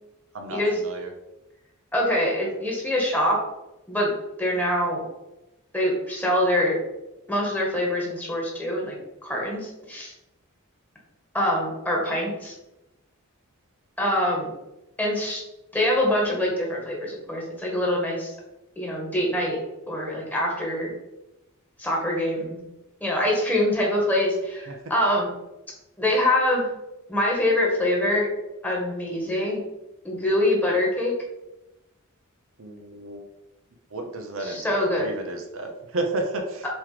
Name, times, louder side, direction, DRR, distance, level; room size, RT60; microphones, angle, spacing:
voice 1, 0.3-1.1 24.7-24.8 32.6-33.2 33.9-36.7, right 2 dB, 65° right, 4 dB, 0.9 m, -32 dB
voice 2, 1.9-3.4 3.9-4.1 4.4-5.0 5.7-6.8 7.3-10.1 11.3-12.5 14.0-14.5 15.0-15.4 15.7-18.4 18.8-19.6 19.9-20.9 21.8-22.6 23.0-25.3 26.0-26.7 27.1-28.3 28.6-29.6 30.0-31.1 34.4-35.2, left 1 dB, 10° left, -2 dB, 1.7 m, -24 dB
7.2 x 3.2 x 5.0 m, 0.95 s
head